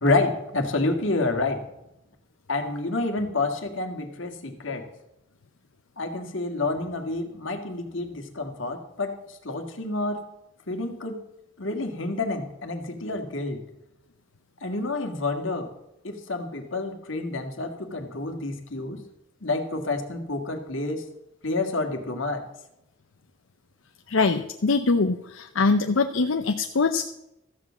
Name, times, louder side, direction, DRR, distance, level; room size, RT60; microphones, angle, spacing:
voice 1, 0.0-1.6 2.5-4.9 6.0-10.2 10.7-11.2 11.6-13.7 14.6-15.7 16.0-19.0 19.4-21.1 21.4-22.4, left 2 dB, 70° left, 5 dB, 1.9 m, -28 dB
voice 2, 24.1-27.1, left 4 dB, 85° left, 6 dB, 0.7 m, -23 dB
14.0 x 7.3 x 7.5 m, 0.85 s
head